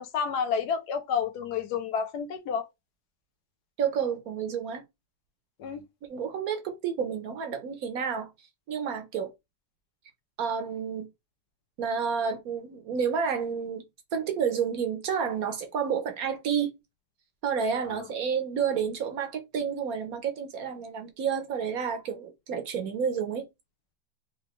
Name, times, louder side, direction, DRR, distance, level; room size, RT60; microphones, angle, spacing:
voice 1, 0.0-2.7 5.6-5.8 17.9-18.1, left 6 dB, 75° left, 1.2 m, -30 dB
voice 2, 3.8-4.8 6.1-8.3 8.7-9.3 10.4-11.1 11.8-13.8 14.1-16.7 17.4-23.5, right 7 dB, 65° right, 1.1 m, -30 dB
4.2 x 2.8 x 3.0 m
omnidirectional pair, 1.8 m